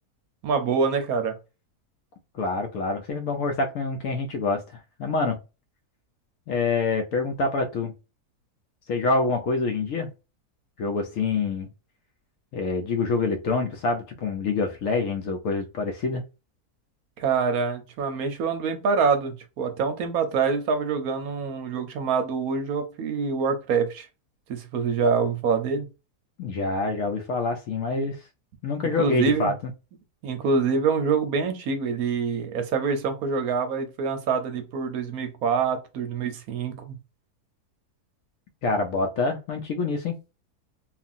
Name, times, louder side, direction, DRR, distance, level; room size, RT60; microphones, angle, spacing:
voice 1, 0.4-1.3 17.2-24.1 24.5-25.9 29.0-29.5 30.2-36.9, right 5 dB, 70° right, 1.0 m, -25 dB
voice 2, 2.3-5.4 6.5-7.9 8.9-10.1 10.8-11.7 12.5-16.2 26.4-28.2 28.6-29.7 38.6-40.1, left 3 dB, 65° left, 0.9 m, -26 dB
2.9 x 2.4 x 2.5 m
omnidirectional pair, 1.7 m